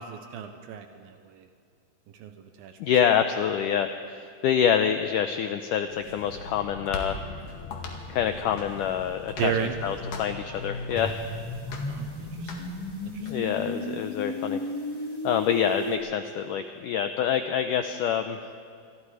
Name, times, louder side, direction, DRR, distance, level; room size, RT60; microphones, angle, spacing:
voice 1, 0.0-1.5 2.2-2.3 2.6-2.8 9.4-9.7 11.9-12.7 13.1-13.4, right 8 dB, 75° right, 7 dB, 2.5 m, -33 dB
voice 2, 2.8-7.2 8.1-9.5 9.8-11.2 13.2-14.6 15.2-18.4, left 8 dB, 90° left, 8 dB, 1.8 m, -26 dB
sound 1, 5.8-13.3, left 4 dB, 60° left, 3.5 m, -39 dB
sound 2, 10.9-15.9, left 1 dB, 5° left, 2.0 m, -34 dB
26.5 x 24.5 x 4.9 m, 2.2 s
omnidirectional pair, 4.6 m